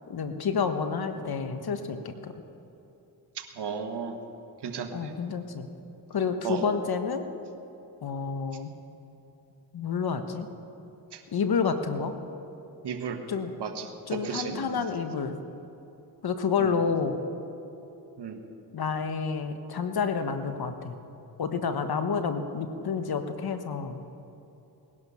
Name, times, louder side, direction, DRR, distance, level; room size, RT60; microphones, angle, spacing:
voice 1, 0.1-2.4 4.9-5.7 6.1-7.2 8.0-8.7 9.7-10.5 11.3-12.2 13.3-13.5 14.1-15.4 16.2-17.2 18.7-21.0 21.4-24.0, left 5 dB, 55° left, 8 dB, 1.3 m, -29 dB
voice 2, 3.3-4.2 4.6-5.1 6.4-6.6 11.1-11.2 12.8-13.2 13.6-14.8 16.6-16.7 18.2-18.4, right 6 dB, 65° right, 6 dB, 1.6 m, -34 dB
19.0 x 11.0 x 5.7 m, 2.9 s
cardioid pair, 65°, 44 cm